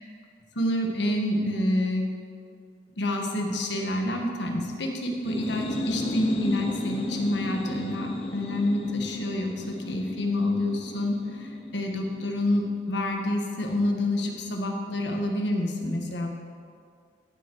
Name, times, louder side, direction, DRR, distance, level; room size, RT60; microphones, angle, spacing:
voice 1, 0.5-2.1 3.0-16.3, left 1 dB, 70° left, 2 dB, 1.5 m, -28 dB
sound 1, 5.1-12.6, left 1 dB, 30° left, 0.8 m, -34 dB
16.0 x 7.7 x 4.7 m, 2.2 s
head